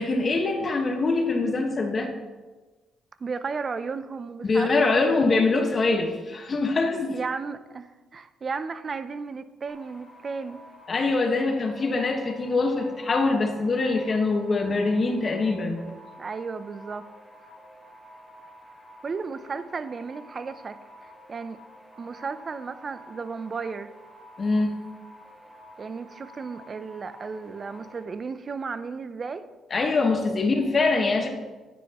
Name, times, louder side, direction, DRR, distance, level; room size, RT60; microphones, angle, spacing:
voice 1, 0.0-2.1 4.4-7.2 10.9-15.8 24.4-24.8 29.7-31.3, left 3 dB, 40° left, 3 dB, 1.4 m, -24 dB
voice 2, 3.2-5.1 7.1-10.6 16.2-17.1 19.0-21.6 22.0-23.9 25.8-29.4, right 5 dB, 40° right, 12 dB, 0.6 m, -34 dB
sound 1, 9.7-28.0, equal, 15° left, 1.9 m, -49 dB
9.9 x 9.5 x 3.0 m, 1.3 s
cardioid pair, 90°, 0 cm